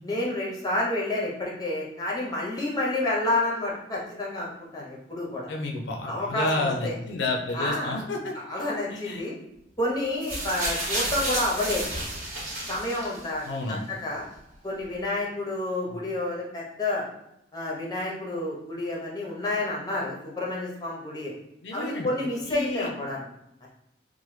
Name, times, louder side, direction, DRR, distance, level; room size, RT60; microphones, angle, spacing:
voice 1, 0.0-5.5 6.1-6.9 7.5-8.1 8.3-9.4 9.8-12.0 12.7-14.3 14.6-17.0 17.5-21.3 21.7-23.3 23.6-23.7, left 1 dB, 20° left, -3 dB, 0.6 m, -29 dB
voice 2, 5.5-8.3 8.9-9.2 13.5-13.8 15.9-16.0 21.6-22.1 22.5-22.9, left 2 dB, 75° left, 1 dB, 0.4 m, -30 dB
sound 1, 10.2-13.5 14.3-14.4, right 1 dB, 45° right, 0.9 m, -31 dB
3.0 x 2.1 x 3.1 m, 0.80 s
head